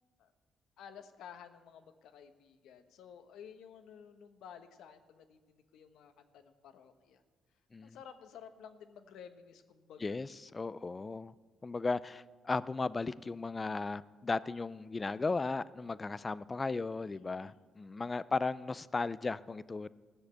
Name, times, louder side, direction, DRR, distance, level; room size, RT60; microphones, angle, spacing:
voice 1, 0.8-7.2 7.8-10.2 17.0-17.6, left 8 dB, 80° left, 9 dB, 1.0 m, -53 dB
voice 2, 10.0-11.3 11.6-19.9, left 3 dB, 25° left, 18 dB, 0.4 m, -36 dB
15.5 x 6.6 x 8.2 m, 1.4 s
cardioid pair, 90°, 0 cm